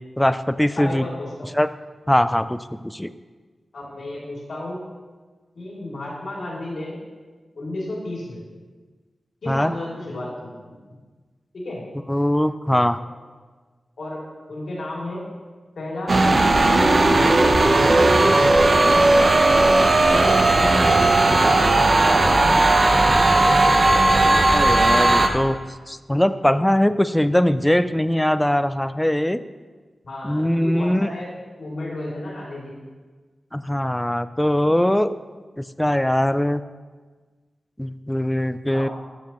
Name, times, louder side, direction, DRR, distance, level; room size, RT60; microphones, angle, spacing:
voice 1, 0.2-1.0 1.6-1.7 2.1-3.1 9.5-9.7 12.1-13.0 24.2-25.6 25.9-29.4 30.2-31.1 33.5-35.1 35.6-36.6 37.8-38.9, left 1 dB, 10° left, 13 dB, 0.3 m, -21 dB
voice 2, 0.8-1.5 3.7-4.8 5.5-7.0 7.5-8.4 9.4-10.5 11.5-11.8 14.0-14.2 14.5-15.2 15.8-16.2 16.8-18.3 18.7-19.1 20.0-21.5 22.0-22.8 23.8-24.0 30.0-31.3 31.6-32.8 38.7-38.9, left 1 dB, 80° left, -5 dB, 2.8 m, -32 dB
sound 1, 16.1-25.3, right 2 dB, 50° right, 0.8 m, -16 dB
12.5 x 7.4 x 3.0 m, 1.4 s
wide cardioid pair, 85°, 0 cm